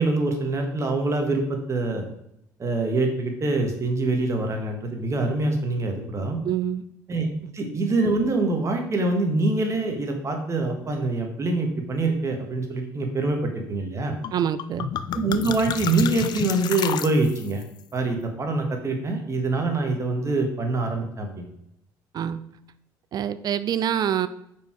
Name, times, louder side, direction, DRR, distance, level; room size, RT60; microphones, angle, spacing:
voice 1, 0.0-2.0 2.6-6.4 7.1-7.3 7.5-14.1 15.1-17.6 17.9-21.5, right 2 dB, 35° right, 3 dB, 1.5 m, -25 dB
voice 2, 6.4-6.8 14.3-14.9 22.1-22.4 23.1-24.3, right 9 dB, 55° right, 14 dB, 0.4 m, -25 dB
sound 1, 14.2-14.3 14.6-17.6, left 9 dB, 55° left, 0.4 m, -30 dB
5.2 x 4.7 x 4.5 m, 0.79 s
supercardioid pair, 80°, 8 cm